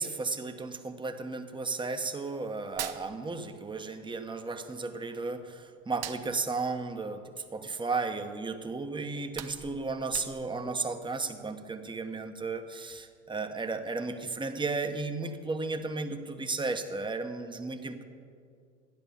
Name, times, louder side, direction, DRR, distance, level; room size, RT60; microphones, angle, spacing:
voice 1, 0.0-18.0, right 3 dB, 15° right, 6 dB, 1.2 m, -34 dB
Hands, 2.6-3.9 4.1-5.4 5.8-8.2 8.6-8.7 9.1-10.7, right 11 dB, 45° right, 1.1 m, -43 dB
14.0 x 10.0 x 7.1 m, 2.3 s
hypercardioid pair, 85°, 36 cm